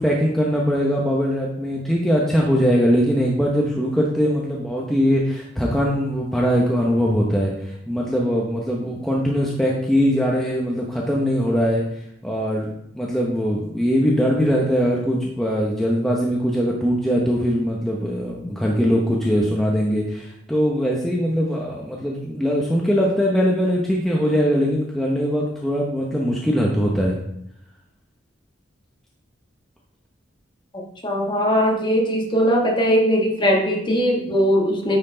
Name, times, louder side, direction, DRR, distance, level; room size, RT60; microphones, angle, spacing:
voice 1, 0.0-11.8 12.2-12.7 12.9-27.2, equal, ahead, -3 dB, 0.9 m, -21 dB
voice 2, 30.7-35.0, equal, 25° left, -1 dB, 1.4 m, -20 dB
9.7 x 4.4 x 3.8 m, 0.75 s
head